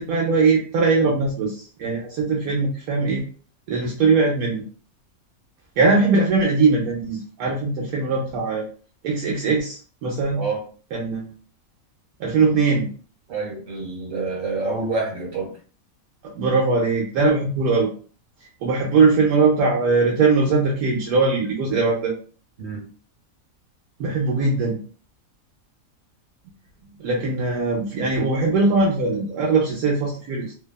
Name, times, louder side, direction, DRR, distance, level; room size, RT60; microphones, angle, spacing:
voice 1, 0.0-3.2 3.7-4.6 5.8-8.6 9.0-10.4 10.9-11.3 12.2-12.9 16.2-17.9 18.6-22.1 24.0-24.8 27.0-30.5, right 4 dB, 85° right, -3 dB, 1.1 m, -20 dB
voice 2, 13.3-15.5 22.6-22.8, right 3 dB, 65° right, -3 dB, 1.5 m, -27 dB
2.7 x 2.2 x 2.2 m, 0.41 s
omnidirectional pair, 1.5 m